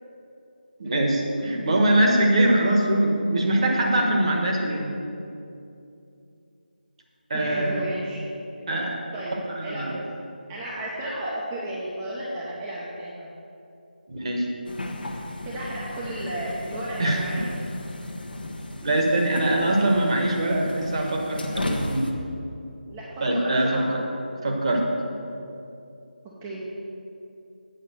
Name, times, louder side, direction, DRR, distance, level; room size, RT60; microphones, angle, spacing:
voice 1, 0.8-5.0 7.3-7.8 8.7-9.0 9.5-9.9 14.1-14.5 17.0-17.4 18.8-22.1 23.2-24.0 24.4-24.9, right 1 dB, 35° right, 0 dB, 1.2 m, -23 dB
voice 2, 7.3-8.2 9.1-9.3 9.6-10.0 10.5-13.3 15.4-17.5 22.9-23.0 23.3-23.9 26.4-26.6, right 1 dB, 15° right, -7 dB, 0.7 m, -33 dB
sound 1, 14.6-22.1, left 2 dB, 65° left, 1.0 m, -35 dB
7.9 x 5.4 x 6.8 m, 2.7 s
figure-of-eight pair, 165°, 5 cm